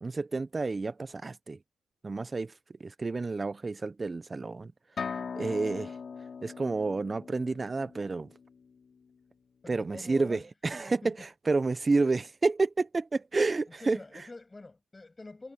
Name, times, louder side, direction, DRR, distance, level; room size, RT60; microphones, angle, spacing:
voice 1, 0.0-1.6 2.0-2.5 2.8-4.7 5.3-6.0 6.4-8.3 9.7-14.0, right 3 dB, 25° right, 0.5 m, -30 dB
sound 1, 5.0-8.7, left 6 dB, 45° left, 4.0 m, -40 dB
voice 2, 9.6-10.4 11.0-11.2 13.7-15.5, left 2 dB, 20° left, 6.2 m, -46 dB
cardioid pair, 90°, 0 cm